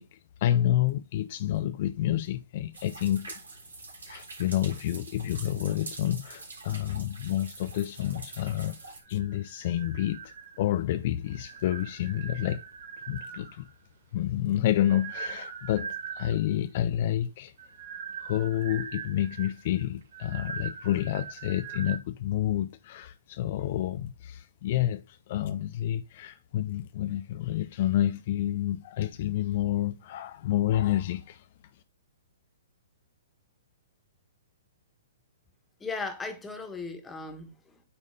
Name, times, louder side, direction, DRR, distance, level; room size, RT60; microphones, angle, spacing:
voice 1, 0.0-3.4 4.1-8.8 9.1-12.6 13.1-13.7 14.1-17.5 18.2-31.5, left 12 dB, 50° left, 0.4 m, -29 dB
sound 1, 2.7-9.0, right 3 dB, 80° right, 3.5 m, -45 dB
sound 2, 9.0-10.8 11.3-13.7 14.4-16.5 17.5-22.0, right 7 dB, 60° right, 1.4 m, -41 dB
voice 2, 35.8-37.8, left 4 dB, 10° left, 1.7 m, -37 dB
8.8 x 3.7 x 5.1 m
figure-of-eight pair, 120°, 0 cm